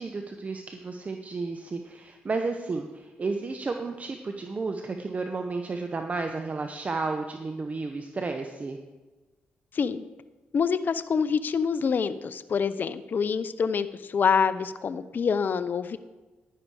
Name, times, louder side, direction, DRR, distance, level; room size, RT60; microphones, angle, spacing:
voice 1, 0.0-8.8, right 3 dB, 35° right, 5 dB, 0.8 m, -32 dB
voice 2, 9.7-10.0 10.5-16.0, left 6 dB, 50° left, 13 dB, 0.6 m, -26 dB
10.5 x 10.0 x 4.8 m, 1.2 s
cardioid pair, 70°, 4 cm